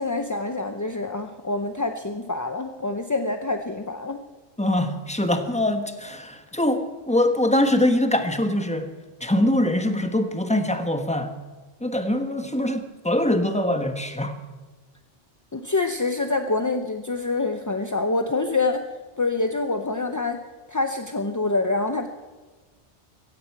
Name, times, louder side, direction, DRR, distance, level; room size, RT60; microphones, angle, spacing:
voice 1, 0.0-4.2 15.5-18.8 19.2-20.4 20.7-22.1, left 3 dB, 20° left, 6 dB, 0.5 m, -26 dB
voice 2, 4.6-8.9 9.2-11.4 11.8-14.4, left 1 dB, 5° left, 7 dB, 1.1 m, -23 dB
16.0 x 16.0 x 4.6 m, 1.3 s
omnidirectional pair, 1.2 m